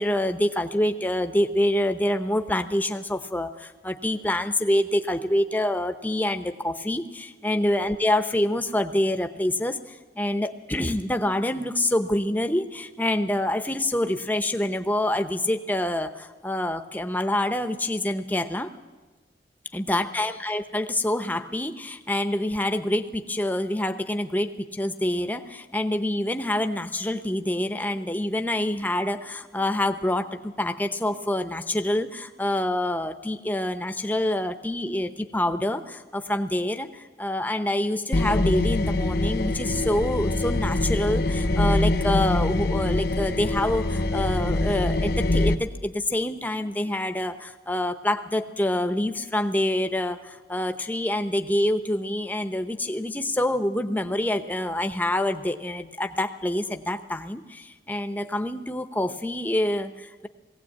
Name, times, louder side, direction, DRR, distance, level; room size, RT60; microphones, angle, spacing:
voice 1, 0.0-18.7 19.7-60.3, left 1 dB, 10° left, 8 dB, 0.7 m, -26 dB
sound 1, 38.1-45.6, left 2 dB, 55° left, 0.8 m, -24 dB
20.0 x 16.5 x 8.6 m, 1.3 s
head